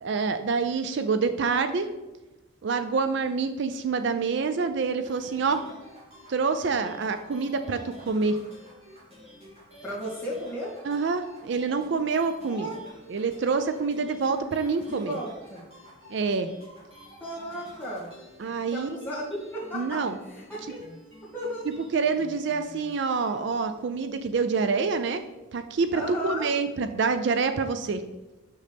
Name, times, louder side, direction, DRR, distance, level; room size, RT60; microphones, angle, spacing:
voice 1, 0.0-1.9 2.6-5.6 6.3-8.4 10.8-12.7 13.1-15.2 16.1-16.5 18.4-18.9 19.7-20.2 21.9-25.2 25.5-28.0, right 4 dB, 55° right, 9 dB, 0.4 m, -26 dB
sound 1, 5.0-23.7, equal, 30° right, 2.5 m, -50 dB
voice 2, 9.8-10.7 12.5-12.8 14.8-15.6 17.2-18.1 18.7-20.8 21.3-21.7 25.9-26.5, equal, 10° left, -7 dB, 2.2 m, -34 dB
6.5 x 6.4 x 3.5 m, 1.1 s
head